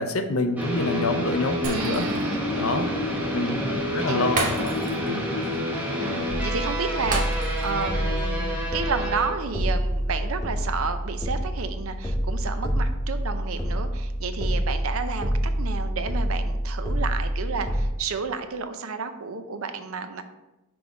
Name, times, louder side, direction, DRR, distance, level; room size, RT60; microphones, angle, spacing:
voice 1, 0.0-2.0 2.6-2.9 3.3-4.8 5.1-5.2, left 2 dB, 70° left, 6 dB, 0.7 m, -26 dB
sound 1, 0.6-9.3, equal, 10° right, 1.1 m, -28 dB
Shatter, 1.6-2.3 2.7-2.8 4.4-5.1 5.4-5.6 7.1-7.8 8.2-8.3, right 3 dB, 40° right, 1.0 m, -31 dB
voice 2, 1.7-2.8 4.1-4.2 6.0-20.2, right 5 dB, 70° right, 8 dB, 0.6 m, -31 dB
sound 2, 6.3-17.9, equal, 15° left, 0.7 m, -27 dB
6.1 x 3.5 x 5.0 m, 0.99 s
head